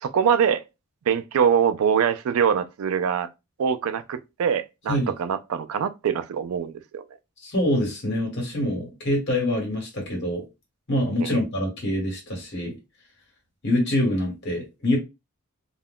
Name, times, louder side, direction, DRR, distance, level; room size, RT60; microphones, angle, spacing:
voice 1, 0.0-0.6 1.1-3.3 3.6-7.0 11.2-11.3, right 7 dB, 70° right, 0.3 m, -23 dB
voice 2, 7.4-10.4 10.9-12.8 13.6-15.0, left 1 dB, 50° left, 1.2 m, -25 dB
2.3 x 2.1 x 3.5 m
head